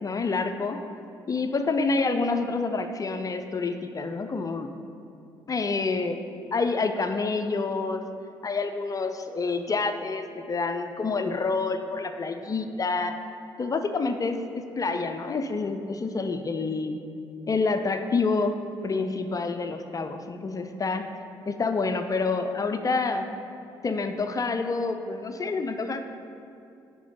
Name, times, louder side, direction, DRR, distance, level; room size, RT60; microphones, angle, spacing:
voice 1, 0.0-0.8 1.3-4.7 5.5-6.2 6.5-8.0 8.4-13.2 13.6-17.0 17.5-18.5 18.8-21.0 21.5-23.3 23.8-26.1, left 4 dB, 30° left, 7 dB, 0.5 m, -28 dB
9.2 x 5.4 x 3.8 m, 2.7 s
figure-of-eight pair, 45°, 12 cm